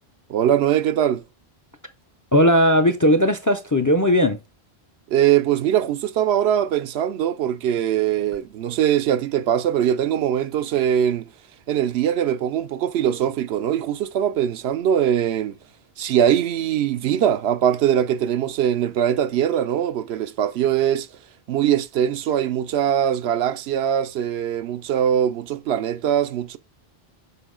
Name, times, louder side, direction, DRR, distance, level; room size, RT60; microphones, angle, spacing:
voice 1, 0.3-1.2 5.1-11.3 11.7-15.6 16.0-21.1 21.5-26.6, right 10 dB, 85° right, 0.8 m, -21 dB
voice 2, 2.3-4.4, equal, 25° left, 0.4 m, -17 dB
6.8 x 4.4 x 3.8 m
omnidirectional pair, 1.0 m